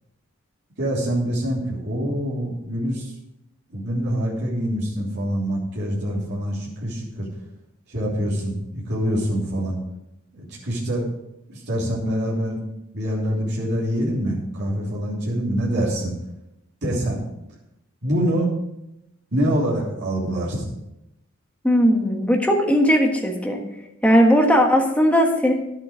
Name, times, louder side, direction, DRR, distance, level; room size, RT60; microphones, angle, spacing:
voice 1, 0.8-3.1 3.7-7.3 7.9-9.8 10.3-11.1 11.5-12.6 12.9-16.1 16.8-17.2 18.0-18.5 19.3-20.7, equal, 55° right, -7 dB, 3.1 m, -25 dB
voice 2, 21.6-23.6 24.0-25.5, equal, 5° left, 1 dB, 1.5 m, -18 dB
11.0 x 7.8 x 5.0 m, 0.88 s
head